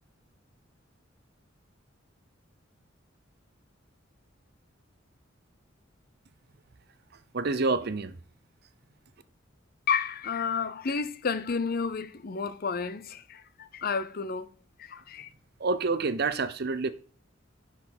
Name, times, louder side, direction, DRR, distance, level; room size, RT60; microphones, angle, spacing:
voice 1, 7.3-8.2 15.6-16.9, right 3 dB, 55° right, 0.7 m, -27 dB
voice 2, 9.9-14.5 14.8-15.3, left 5 dB, 50° left, 0.6 m, -31 dB
9.8 x 4.6 x 3.9 m
head